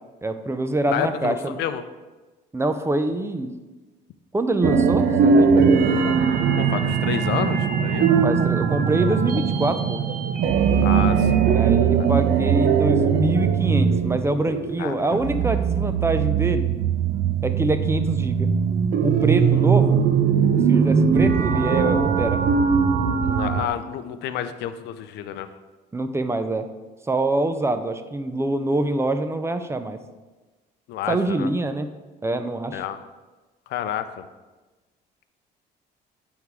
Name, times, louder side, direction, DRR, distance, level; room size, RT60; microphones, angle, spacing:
voice 1, 0.2-1.6 2.5-3.5 4.3-5.6 8.2-10.0 11.4-16.7 17.4-18.5 19.0-20.0 20.5-22.4 25.9-26.7 27.1-30.0 31.1-31.9 32.2-32.8, right 2 dB, 15° right, 9 dB, 0.5 m, -25 dB
voice 2, 0.9-1.8 6.6-8.1 10.8-11.6 12.0-12.1 14.8-15.1 19.3-19.6 20.6-20.9 23.2-25.5 30.9-31.5 32.7-33.0 33.7-34.0, left 10 dB, 75° left, 11 dB, 0.5 m, -30 dB
sound 1, 4.6-23.7, right 6 dB, 60° right, 0.7 m, -20 dB
9.9 x 3.6 x 4.6 m, 1.2 s
cardioid pair, 100°, 17 cm